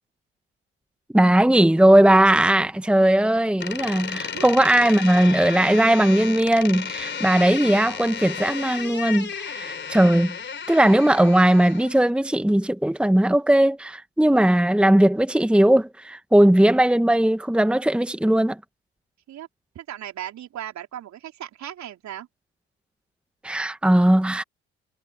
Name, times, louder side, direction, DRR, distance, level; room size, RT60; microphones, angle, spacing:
voice 1, 1.1-10.3 10.7-18.6 23.4-24.4, right 1 dB, 5° right, 1.4 m, -18 dB
Door, 3.6-12.1, left 7 dB, 35° left, 3.9 m, -33 dB
voice 2, 19.7-22.3, right 11 dB, 55° right, 4.3 m, -36 dB
hypercardioid pair, 55°, 33 cm